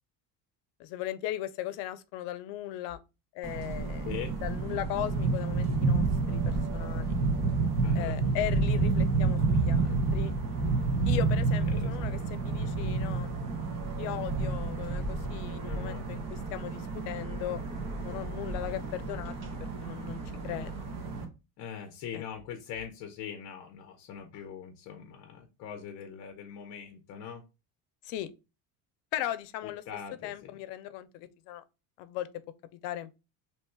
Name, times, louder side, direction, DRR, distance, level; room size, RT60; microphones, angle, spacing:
voice 1, 0.8-3.0 3.3-4.1 4.4-7.2 7.9-10.3 11.1-12.2 12.4-13.3 14.0-17.6 18.0-20.8 22.1-22.2 28.0-28.3 29.1-29.8 30.2-31.6 32.0-32.3 32.7-33.1, left 13 dB, 85° left, 0.6 m, -37 dB
sound 1, 3.4-21.2, right 3 dB, 50° right, 1.0 m, -30 dB
voice 2, 7.8-8.2 11.7-11.9 15.7-16.1 18.7-19.0 21.6-27.4 29.9-30.5, left 8 dB, 45° left, 0.6 m, -42 dB
3.0 x 2.2 x 4.2 m
cardioid pair, 160°, 41 cm